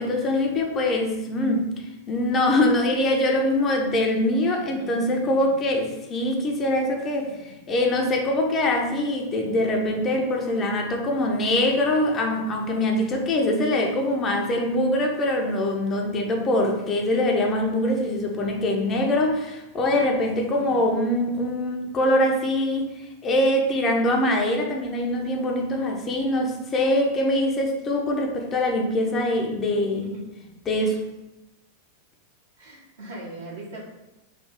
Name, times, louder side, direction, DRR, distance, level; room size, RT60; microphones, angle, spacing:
voice 1, 0.0-1.8 2.1-22.9 23.2-30.1 30.7-31.0, left 1 dB, 30° left, 1 dB, 0.6 m, -23 dB
voice 2, 4.6-5.5 7.2-7.5 9.5-10.0 16.8-16.9 29.6-30.5 32.6-33.8, right 1 dB, 75° right, -6 dB, 1.5 m, -41 dB
3.3 x 2.3 x 3.5 m, 0.96 s
hypercardioid pair, 100°, 0 cm